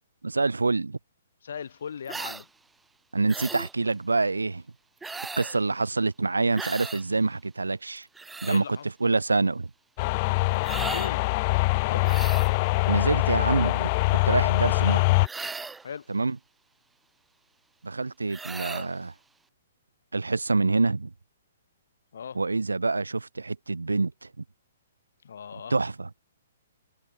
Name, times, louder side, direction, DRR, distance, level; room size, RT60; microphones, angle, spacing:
voice 1, 0.2-1.0 3.1-4.6 5.4-8.1 8.4-9.7 12.9-13.9 14.3-15.2 16.1-16.4 17.8-19.1 20.1-21.1 22.3-24.4 25.7-26.1, right 3 dB, 80° right, 0.4 m, -26 dB
voice 2, 1.4-2.5 8.4-8.8 10.7-11.2 11.9-12.1 15.8-16.1 22.1-22.4 25.2-25.7, left 7 dB, 65° left, 4.1 m, -38 dB
sound 1, 2.1-2.4 3.3-3.7 5.0-5.6 6.5-7.0 8.0-8.6 10.6-11.1 12.0-12.6 15.2-15.9 18.3-18.9, right 4 dB, 10° right, 2.2 m, -37 dB
sound 2, 10.0-15.3, left 24 dB, 35° left, 0.3 m, -23 dB
figure-of-eight pair, 125°, 0 cm